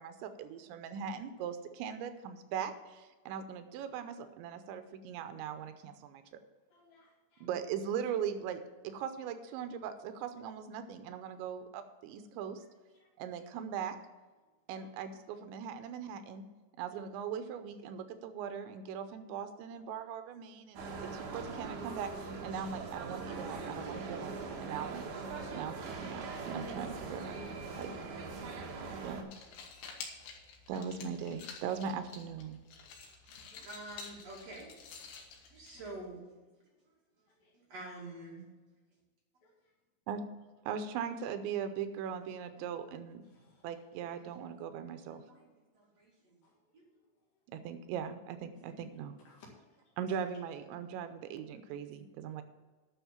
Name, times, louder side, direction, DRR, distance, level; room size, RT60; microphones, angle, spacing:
voice 1, 0.0-6.2 7.4-12.6 13.2-14.0 14.7-16.4 16.8-25.0 25.5-27.4 27.8-27.9 29.0-29.3 30.7-32.6 40.1-40.2 40.7-43.2 43.6-45.2 47.5-49.1 50.0-52.4, right 7 dB, 85° right, 9 dB, 3.0 m, -40 dB
voice 2, 6.7-7.5 12.6-12.7 12.9-13.5 14.7-14.9 16.9-17.0 30.1-30.5 33.0-33.1 33.4-33.7 35.1-35.3 37.3-37.5 39.4-39.7 43.2-43.8 46.4-47.2 49.2-50.2, left 2 dB, 60° left, -1 dB, 3.5 m, -65 dB
sound 1, 20.7-29.2, right 4 dB, 60° right, 2.3 m, -41 dB
sound 2, 29.2-36.2, left 5 dB, 80° left, 3.8 m, -50 dB
voice 3, 33.2-34.7 35.5-36.2 37.5-38.4 42.5-42.6 44.4-45.5 45.7-46.4 46.7-46.8 48.6-49.0, right 2 dB, 45° right, -4 dB, 2.8 m, -48 dB
11.0 x 6.3 x 7.2 m, 1.3 s
omnidirectional pair, 5.2 m